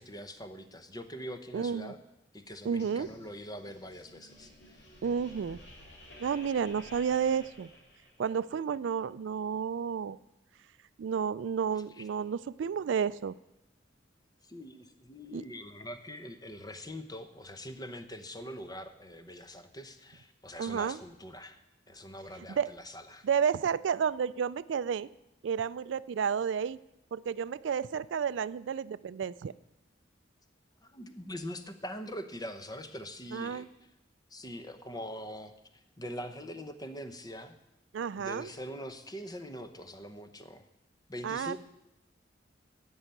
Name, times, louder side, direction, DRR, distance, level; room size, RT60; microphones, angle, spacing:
voice 1, 0.0-2.0 2.3-5.0 12.0-12.1 14.4-21.6 21.9-23.3 30.8-33.7 34.3-37.6 38.1-40.7 41.1-41.6, equal, 20° left, 8 dB, 0.9 m, -43 dB
voice 2, 1.5-1.9 2.6-3.1 5.0-5.6 6.2-7.7 8.2-10.2 11.0-13.3 15.3-15.4 20.6-21.0 22.5-22.7 23.2-25.1 25.4-26.8 27.1-29.5 33.3-33.7 37.9-38.5 41.2-41.6, right 7 dB, 75° right, 17 dB, 0.3 m, -31 dB
sound 1, 2.8-8.4, left 1 dB, 60° left, 3.3 m, -53 dB
14.0 x 5.6 x 9.1 m, 0.92 s
head